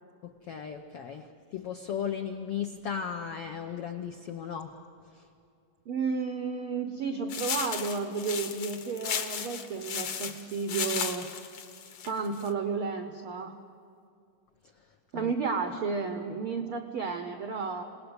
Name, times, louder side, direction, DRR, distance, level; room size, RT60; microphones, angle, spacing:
voice 1, 0.2-4.8 5.1-5.3 15.1-15.3, left 8 dB, 80° left, 4 dB, 1.3 m, -36 dB
voice 2, 5.9-11.3 12.0-13.6 15.1-17.8, right 5 dB, 80° right, 6 dB, 1.2 m, -32 dB
sound 1, 7.3-12.5, left 7 dB, 60° left, 2.1 m, -35 dB
27.5 x 19.0 x 8.1 m, 2.4 s
omnidirectional pair, 3.9 m